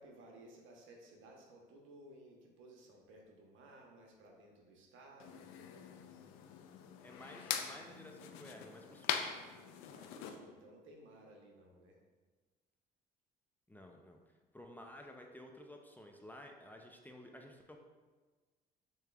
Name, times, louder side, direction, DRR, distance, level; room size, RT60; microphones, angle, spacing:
voice 1, 0.0-5.5 9.9-12.0 14.8-14.9, right 1 dB, 65° right, 0 dB, 1.0 m, -58 dB
sound 1, 5.2-10.4, left 8 dB, 75° left, 0.4 m, -42 dB
voice 2, 7.0-9.2 13.7-14.2 14.5-17.8, left 1 dB, 10° left, 2 dB, 0.5 m, -53 dB
6.5 x 3.0 x 2.3 m, 1.3 s
hypercardioid pair, 65°, 21 cm